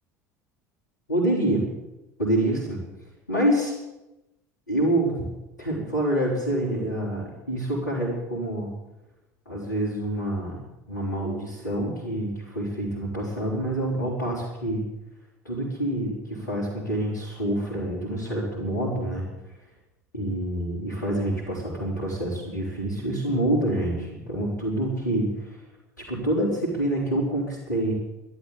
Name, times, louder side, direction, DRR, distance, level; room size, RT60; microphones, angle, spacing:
voice 1, 1.1-1.7 2.2-2.8 3.3-3.7 4.7-5.1 5.6-8.7 9.5-10.6 10.9-14.9 15.4-19.3 20.1-25.6 26.1-27.9, right 1 dB, 85° left, -7 dB, 4.2 m, -27 dB
13.0 x 12.0 x 8.6 m, 0.94 s
figure-of-eight pair, 65°, 9 cm